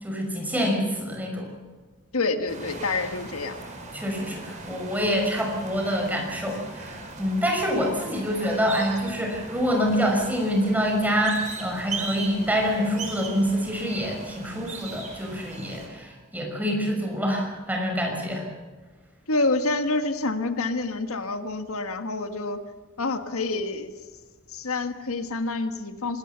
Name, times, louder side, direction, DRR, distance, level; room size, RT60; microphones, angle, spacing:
voice 1, 0.0-1.5 3.9-18.5, equal, 10° right, 1 dB, 5.8 m, -26 dB
voice 2, 2.1-3.6 19.3-22.6 23.0-23.9 24.5-26.2, left 3 dB, 85° left, 8 dB, 1.6 m, -27 dB
sound 1, 2.5-15.9, right 3 dB, 35° right, 5.0 m, -39 dB
25.5 x 19.5 x 7.0 m, 1.4 s
head